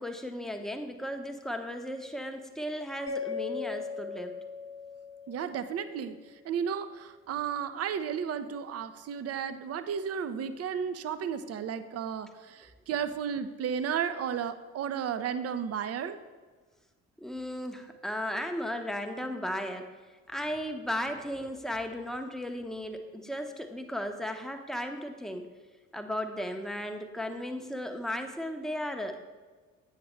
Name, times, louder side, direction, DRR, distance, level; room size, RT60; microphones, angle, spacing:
voice 1, 0.0-4.3 17.2-19.9 20.3-25.4 25.9-29.2, equal, ahead, 4 dB, 0.8 m, -35 dB
Mallet percussion, 3.1-6.1, left 5 dB, 40° left, 1.1 m, -38 dB
voice 2, 5.3-16.2, right 7 dB, 40° right, 12 dB, 0.5 m, -33 dB
8.5 x 6.5 x 3.1 m, 1.4 s
hypercardioid pair, 45°, 39 cm